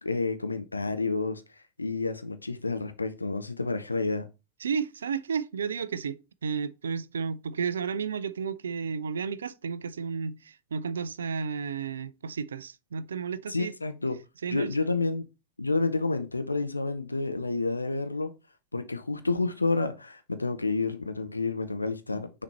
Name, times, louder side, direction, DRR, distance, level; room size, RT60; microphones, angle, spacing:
voice 1, 0.0-1.4 1.8-4.3 13.5-14.2 14.5-15.3 15.6-18.3 18.7-22.4, left 3 dB, 80° left, 0.6 m, -29 dB
voice 2, 4.6-13.7 14.4-14.7, right 6 dB, 70° right, 0.4 m, -32 dB
6.2 x 4.1 x 4.3 m
figure-of-eight pair, 90°, 0 cm